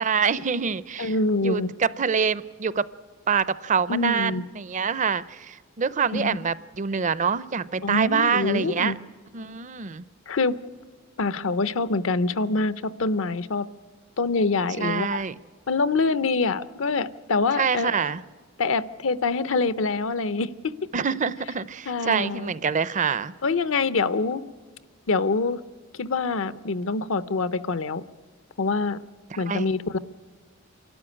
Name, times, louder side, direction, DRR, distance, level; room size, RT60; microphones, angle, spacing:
voice 1, 0.0-1.1 1.4-2.9 3.3-8.9 9.3-10.0 14.8-15.3 17.6-18.2 20.9-23.3 29.5-29.6, right 6 dB, 40° right, 18 dB, 0.5 m, -25 dB
voice 2, 1.0-1.7 3.9-4.4 6.1-6.4 7.8-9.0 10.3-10.5 11.2-13.7 14.2-15.2 15.7-17.9 18.6-20.7 21.9-22.5 23.4-24.4 25.1-25.6 26.0-28.0 28.6-29.0 29.4-30.0, left 3 dB, 75° left, 14 dB, 0.7 m, -25 dB
27.0 x 12.5 x 9.8 m, 1.5 s
head